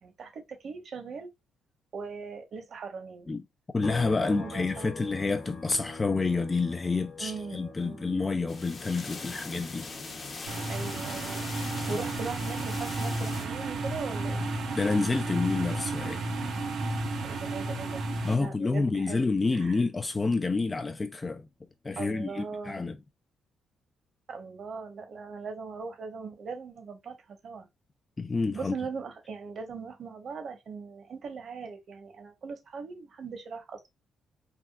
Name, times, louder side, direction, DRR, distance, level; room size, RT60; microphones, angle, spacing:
voice 1, 0.0-1.3 1.9-3.3 4.2-5.2 7.2-8.2 10.7-11.5 11.9-14.4 17.2-18.1 18.3-19.2 19.5-19.8 22.0-22.8 24.3-27.7 28.5-33.9, right 5 dB, 55° right, 1.1 m, -40 dB
voice 2, 3.7-9.9 11.9-12.0 14.7-16.2 18.2-21.5 21.8-23.0 28.2-28.7, left 3 dB, 25° left, 0.3 m, -29 dB
sound 1, 3.8-17.4 17.7-19.9, left 4 dB, 60° left, 1.1 m, -47 dB
sound 2, 8.5-13.5, left 3 dB, 40° left, 0.8 m, -41 dB
sound 3, 10.5-18.3, right 2 dB, 70° right, 0.8 m, -32 dB
3.5 x 2.3 x 2.4 m
cardioid pair, 90°, 0 cm